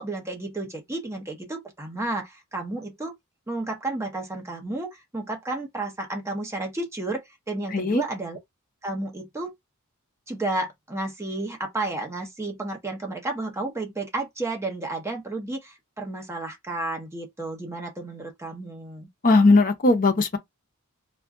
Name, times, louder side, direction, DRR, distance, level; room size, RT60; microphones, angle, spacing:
voice 1, 0.0-3.1 3.5-8.4 8.8-9.5 10.3-19.1, right 2 dB, 10° right, 0.7 m, -32 dB
voice 2, 7.7-8.0 19.2-20.4, left 3 dB, 40° left, 0.6 m, -18 dB
2.4 x 2.2 x 3.5 m
head